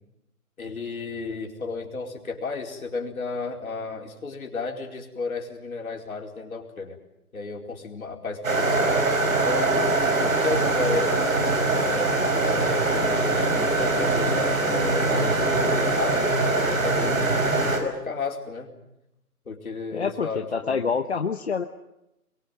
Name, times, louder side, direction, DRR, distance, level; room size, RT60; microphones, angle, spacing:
voice 1, 0.6-7.0 7.3-8.9 9.3-9.9 10.2-16.3 16.7-18.7 19.5-20.9, left 4 dB, 65° left, 2 dB, 4.7 m, -33 dB
sound 1, 8.4-17.8, right 2 dB, 60° right, 5.3 m, -23 dB
voice 2, 19.9-21.7, left 5 dB, 45° left, 7 dB, 1.0 m, -27 dB
25.0 x 22.5 x 7.9 m, 0.88 s
hypercardioid pair, 170°, 45 cm